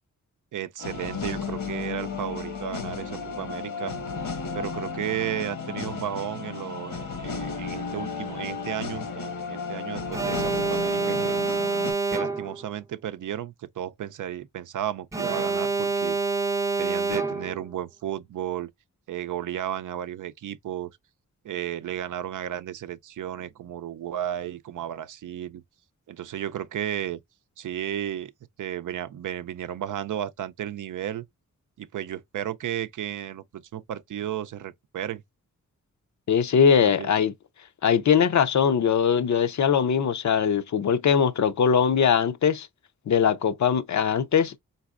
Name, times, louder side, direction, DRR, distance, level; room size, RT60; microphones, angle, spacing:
voice 1, 0.5-4.0 4.5-11.4 12.1-16.2 16.8-18.7 19.1-20.9 21.4-25.6 26.1-27.2 27.6-28.3 28.6-31.3 31.8-35.2 36.8-37.1, right 10 dB, 70° right, 0.5 m, -33 dB
sound 1, 0.8-11.9, left 5 dB, 85° left, 1.5 m, -34 dB
Alarm, 10.1-12.7 15.1-17.7, right 4 dB, 10° right, 0.5 m, -27 dB
voice 2, 36.3-37.3 37.8-42.7 43.1-44.6, left 7 dB, 60° left, 0.6 m, -21 dB
4.0 x 4.0 x 2.4 m
cardioid pair, 70°, 32 cm